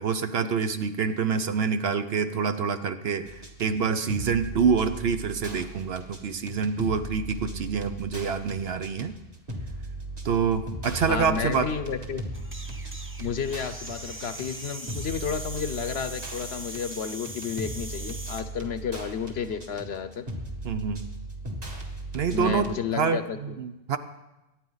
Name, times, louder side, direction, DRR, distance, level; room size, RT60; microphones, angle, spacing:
voice 1, 0.0-9.1 10.2-11.7 20.6-21.0 22.1-24.0, right 6 dB, 60° right, 10 dB, 0.9 m, -26 dB
sound 1, 3.2-22.8, right 2 dB, 30° right, 1.9 m, -38 dB
voice 2, 11.1-12.2 13.2-20.2 22.3-23.6, left 6 dB, 60° left, 10 dB, 1.0 m, -31 dB
sound 2, 12.3-18.5, right 1 dB, 10° right, 0.8 m, -41 dB
24.0 x 9.9 x 4.0 m, 0.98 s
omnidirectional pair, 1.3 m